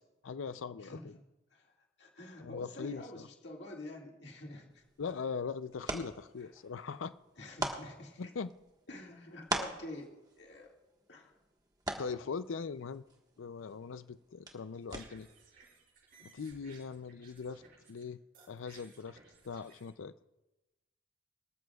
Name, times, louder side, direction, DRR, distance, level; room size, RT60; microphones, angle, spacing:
voice 1, 0.2-1.2 2.4-3.3 5.0-7.1 8.2-8.5 11.9-13.0 13.4-15.3 16.2-17.6 17.9-18.2 18.5-19.2 19.4-20.1, left 5 dB, 85° left, 0.5 m, -40 dB
voice 2, 0.8-1.1 1.5-1.7 2.0-4.8 6.4-6.5 7.4-8.3 8.9-10.7 11.1-11.4, left 1 dB, 60° left, 2.0 m, -48 dB
sound 1, 4.7-15.4, right 2 dB, 20° right, 1.4 m, -44 dB
sound 2, 14.6-18.0 18.3-19.9, right 4 dB, 45° right, 5.8 m, -60 dB
23.0 x 14.0 x 2.4 m
head